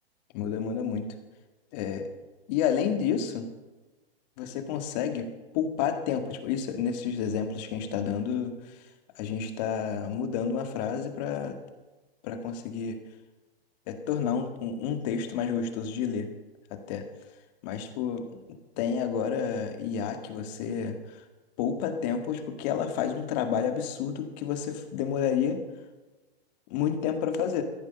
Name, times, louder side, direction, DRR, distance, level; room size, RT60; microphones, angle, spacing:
voice 1, 0.3-1.1 1.7-2.1 2.5-3.5 4.4-8.8 9.2-11.6 12.2-13.0 13.9-16.3 16.7-17.0 17.6-18.5 18.8-21.2 21.6-25.6 26.7-27.6, left 7 dB, 45° left, 7 dB, 1.9 m, -30 dB
14.0 x 10.5 x 6.8 m, 1.2 s
hypercardioid pair, 125°, 30 cm